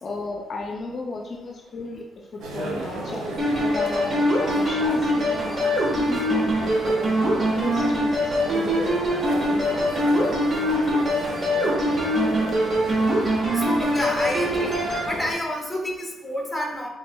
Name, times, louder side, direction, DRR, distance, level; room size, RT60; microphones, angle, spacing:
voice 1, 0.0-3.2 3.7-10.4, left 3 dB, 45° left, 1 dB, 0.4 m, -35 dB
sound 1, 2.4-15.3, right 1 dB, 80° right, 0.8 m, -34 dB
sound 2, 3.4-15.1, equal, 35° right, 1.2 m, -23 dB
voice 2, 13.5-14.7 15.1-16.9, left 1 dB, 5° left, 0 dB, 1.0 m, -29 dB
5.9 x 3.3 x 2.2 m, 1.0 s
cardioid pair, 90°, 0 cm